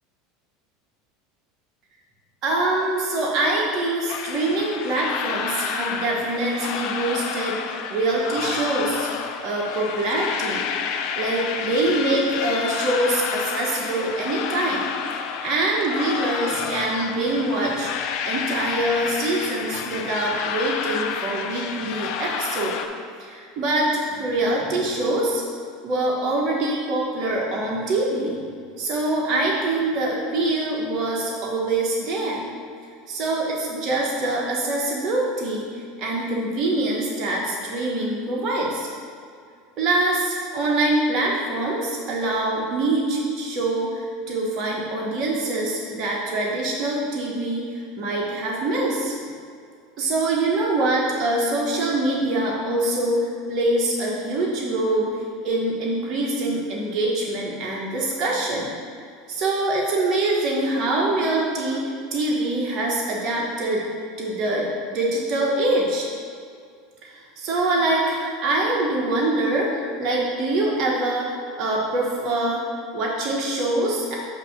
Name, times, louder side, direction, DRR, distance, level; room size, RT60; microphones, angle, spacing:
voice 1, 2.4-9.1 9.4-10.7 11.2-14.9 15.4-17.9 18.2-22.7 23.2-25.4 25.8-28.4 28.8-32.5 33.1-35.7 36.0-38.9 39.8-49.1 50.0-55.2 55.4-58.7 59.3-63.8 64.2-66.1 67.0-72.6 72.9-74.1, right 2 dB, 45° right, -3 dB, 1.2 m, -24 dB
sound 1, 4.1-22.9, left 7 dB, 65° left, 0.5 m, -30 dB
7.9 x 2.8 x 5.9 m, 2.3 s
supercardioid pair, 115°, 0 cm